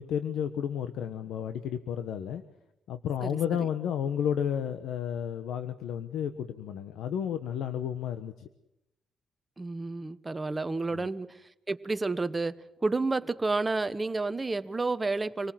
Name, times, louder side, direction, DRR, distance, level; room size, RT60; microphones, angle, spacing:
voice 1, 0.0-2.4 2.9-8.5 10.9-11.1, left 9 dB, 80° left, 1.2 m, -32 dB
voice 2, 3.2-3.7 9.6-11.4 11.7-12.5 12.8-15.5, right 3 dB, 20° right, 1.1 m, -30 dB
26.5 x 19.5 x 7.7 m
cardioid pair, 90°, 0 cm